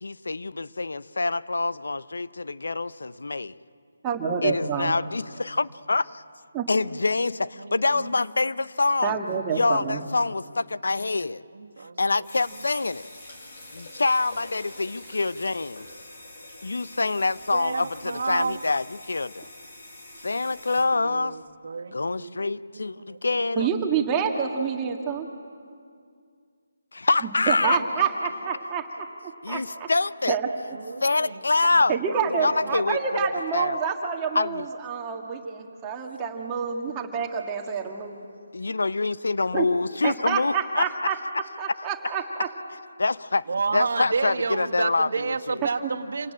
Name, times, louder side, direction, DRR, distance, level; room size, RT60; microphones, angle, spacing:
voice 1, 0.0-3.6 4.4-6.2 6.7-9.2 9.5-11.4 12.0-13.1 13.8-15.9 16.6-19.5 20.2-21.4 21.9-23.7 26.9-27.8 29.4-30.4 31.0-32.0 32.4-33.2 33.5-33.8 34.3-34.7 38.5-40.9 43.0-43.4 43.7-45.6, left 3 dB, 80° left, 0.6 m, -26 dB
voice 2, 4.0-5.0 6.5-6.7 9.0-10.0 23.6-25.3 27.2-28.8 29.5-29.6 30.3-30.5 31.9-38.2 39.5-39.7 40.0-41.2 41.6-42.5, right 6 dB, 20° right, 1.7 m, -27 dB
voice 3, 7.6-8.1 11.5-12.2 17.5-18.6 21.0-23.2 30.7-31.4 31.7-31.8 32.3-32.8 43.5-46.3, right 4 dB, 65° right, 1.6 m, -31 dB
sound 1, 12.2-20.8, left 2 dB, 55° left, 7.7 m, -45 dB
27.5 x 17.5 x 8.8 m
figure-of-eight pair, 155°, 0 cm